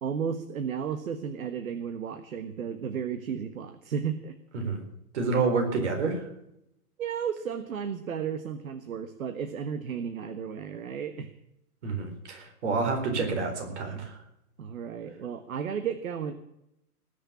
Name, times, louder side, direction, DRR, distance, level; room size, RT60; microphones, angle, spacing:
voice 1, 0.0-4.3 7.0-11.3 14.6-16.3, right 7 dB, 65° right, 9 dB, 1.5 m, -33 dB
voice 2, 5.1-6.2 11.8-14.2, right 4 dB, 50° right, 4 dB, 4.3 m, -28 dB
19.5 x 6.8 x 8.5 m, 0.82 s
hypercardioid pair, 175°, 45 cm